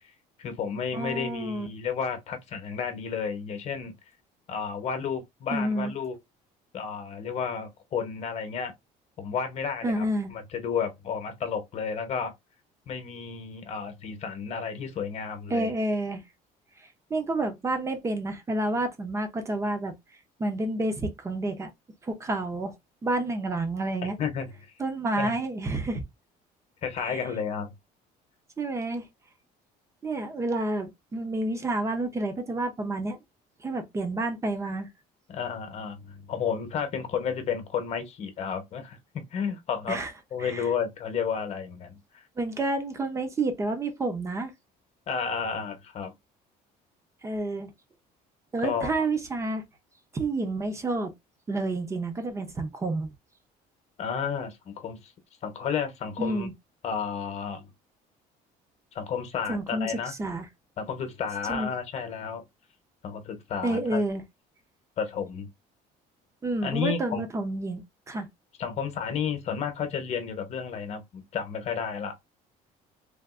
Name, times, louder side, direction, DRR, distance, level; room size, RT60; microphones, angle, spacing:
voice 1, 0.4-3.9 4.5-6.1 6.7-8.7 9.2-12.3 12.9-15.7 24.0-24.5 25.2-25.3 26.8-27.7 35.3-40.0 40.3-42.0 45.1-46.1 48.6-48.9 54.0-55.1 55.4-56.5 56.8-57.7 58.9-60.1 60.8-62.4 63.0-64.0 65.0-65.5 66.6-67.2 68.6-72.2, left 6 dB, 40° left, 1.0 m, -32 dB
voice 2, 0.9-1.7 5.5-5.9 9.8-10.3 15.5-16.2 17.1-19.9 20.4-21.7 22.0-22.7 23.0-24.2 24.8-26.0 27.0-27.2 28.6-29.1 30.0-33.2 33.6-34.9 39.9-40.1 40.4-40.7 42.4-44.5 47.2-47.7 48.5-49.6 50.1-51.1 51.5-53.1 56.2-56.5 59.5-60.5 61.5-61.7 63.6-64.2 66.4-68.3, right 2 dB, 15° right, 0.7 m, -29 dB
3.5 x 2.5 x 2.5 m
cardioid pair, 150°, 17 cm